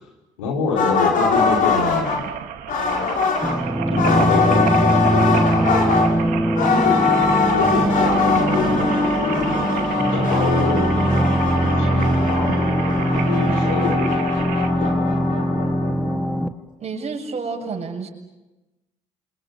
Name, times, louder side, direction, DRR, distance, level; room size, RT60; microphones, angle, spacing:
voice 1, 0.4-2.2 3.9-5.5 6.7-7.0 7.5-9.5 10.1-11.2 11.8-14.3 14.8-15.0, left 3 dB, 85° left, 0 dB, 5.2 m, -26 dB
sound 1, 0.8-2.2 2.7-3.6 4.0-6.1 6.6-16.3, left 5 dB, 55° left, 5.6 m, -22 dB
sound 2, 1.3-14.7, right 10 dB, 65° right, 2.4 m, -32 dB
sound 3, 3.4-16.5, right 1 dB, ahead, 2.1 m, -21 dB
voice 2, 16.8-18.1, right 4 dB, 45° right, 3 dB, 7.5 m, -29 dB
28.5 x 26.5 x 7.0 m, 1.0 s
hypercardioid pair, 50°, 16 cm